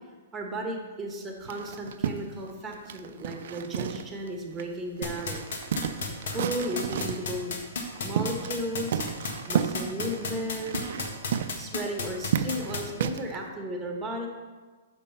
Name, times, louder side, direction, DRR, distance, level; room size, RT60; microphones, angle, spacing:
voice 1, 0.3-5.4 6.3-7.6 8.0-9.0 9.5-10.8 11.5-14.3, equal, 10° right, 1 dB, 1.5 m, -34 dB
sound 1, 1.4-4.3 4.6-4.7 5.0-7.3 7.8-8.6 8.9-13.4, right 8 dB, 65° right, 0.5 m, -32 dB
sound 2, 5.0-12.8, left 5 dB, 70° left, 1.3 m, -32 dB
6.8 x 5.2 x 5.7 m, 1.3 s
hypercardioid pair, 135°, 0 cm